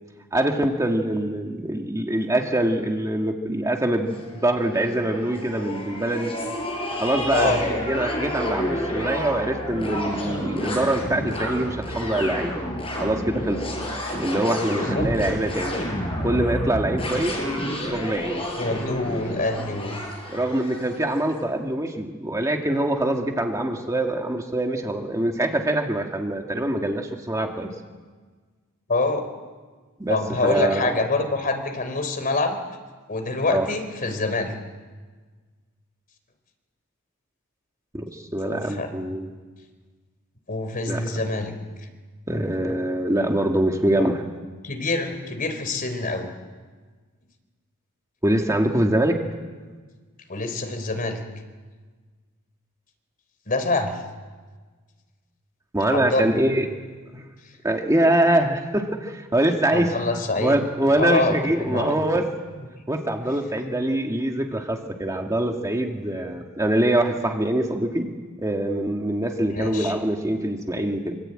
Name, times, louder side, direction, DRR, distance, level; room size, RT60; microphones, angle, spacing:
voice 1, 0.3-6.3 6.9-12.5 13.0-13.7 14.2-15.8 16.2-17.3 17.8-18.4 20.3-27.7 30.0-30.9 33.5-33.7 37.9-39.3 40.9-41.2 42.3-44.2 48.2-49.2 55.7-56.7 57.1-57.2 57.6-59.9 60.4-62.3 62.9-68.1 68.4-71.2, right 1 dB, 15° right, 2 dB, 2.0 m, -24 dB
sound 1, 4.1-21.2, equal, 25° left, 7.5 m, -30 dB
voice 2, 7.3-7.6 14.6-15.1 18.6-20.0 28.9-29.3 30.1-32.6 33.1-34.5 38.4-38.9 40.5-41.5 44.6-46.3 50.3-51.2 53.5-54.0 55.9-56.4 59.7-60.6 61.0-61.9 69.5-69.9, left 3 dB, 40° left, 6 dB, 3.7 m, -26 dB
25.5 x 25.0 x 8.9 m, 1.4 s
head